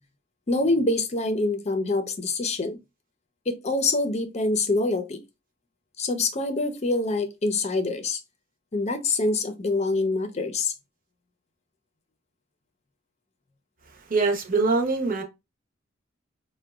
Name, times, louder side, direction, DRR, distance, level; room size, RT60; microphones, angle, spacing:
voice 1, 0.5-2.8 3.5-5.2 6.0-8.2 8.7-10.7, left 2 dB, 35° left, 0.6 m, -25 dB
voice 2, 14.1-15.2, right 3 dB, 50° right, 0.8 m, -23 dB
4.6 x 2.2 x 2.3 m
head